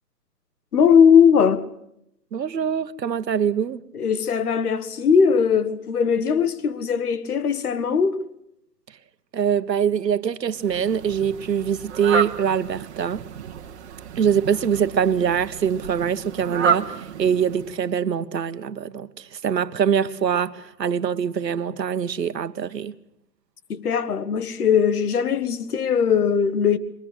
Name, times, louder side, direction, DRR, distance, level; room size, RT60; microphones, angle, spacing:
voice 1, 0.7-1.6 3.9-8.2 23.7-26.8, left 7 dB, 65° left, 1.6 m, -19 dB
voice 2, 2.3-3.8 9.3-13.2 14.2-22.9, right 8 dB, 85° right, 1.4 m, -24 dB
Fowl, 10.5-17.9, right 6 dB, 40° right, 1.7 m, -30 dB
22.5 x 20.5 x 7.9 m
hypercardioid pair, 165°, 49 cm